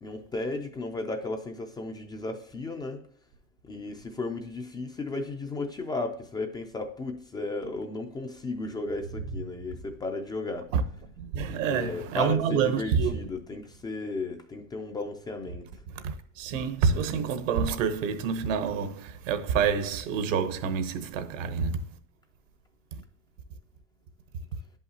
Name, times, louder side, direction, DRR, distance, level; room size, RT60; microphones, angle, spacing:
voice 1, 0.0-3.0 3.7-10.7 11.7-15.7, left 2 dB, 10° left, 0.3 m, -34 dB
voice 2, 11.2-13.2 15.9-21.8, right 6 dB, 75° right, 1.1 m, -27 dB
10.5 x 5.6 x 2.8 m
supercardioid pair, 130°, 38 cm